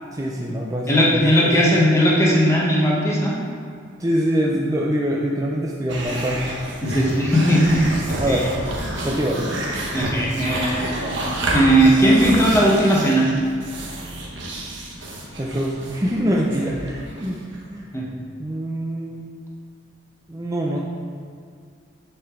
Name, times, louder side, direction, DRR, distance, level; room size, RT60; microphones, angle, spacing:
voice 1, 0.1-1.5 4.0-6.4 8.2-8.5 9.0-9.6 15.4-17.4 17.7-17.9 18.4-19.2 20.3-20.8, equal, 15° right, -3 dB, 0.5 m, -24 dB
voice 2, 0.9-3.4 6.8-8.4 9.9-10.8 11.5-13.3 17.9-18.1, equal, 15° left, -4 dB, 1.1 m, -17 dB
sound 1, 5.9-17.6, right 1 dB, 70° right, 1.2 m, -29 dB
10.0 x 4.7 x 3.7 m, 2.2 s
head